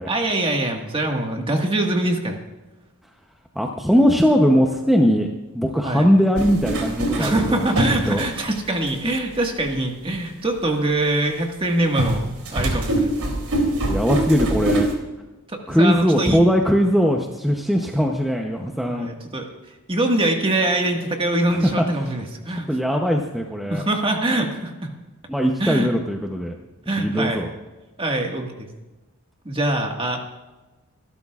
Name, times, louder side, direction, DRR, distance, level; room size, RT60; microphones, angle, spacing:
voice 1, 0.1-2.4 5.8-6.1 7.2-13.3 15.5-16.4 18.9-19.5 19.9-22.7 23.7-24.9 25.6-25.9 26.9-27.4 28.0-28.7 29.4-30.2, right 1 dB, 25° right, 2 dB, 1.7 m, -23 dB
voice 2, 3.6-5.3 5.5-8.2 13.8-14.9 15.7-19.1 21.5-21.8 22.5-23.8 25.3-26.6 27.0-27.5, equal, ahead, 1 dB, 0.8 m, -20 dB
sound 1, 6.4-8.9 9.6-9.7 12.0-14.9, right 1 dB, 90° right, 3.3 m, -23 dB
25.5 x 12.5 x 2.4 m, 1.1 s
head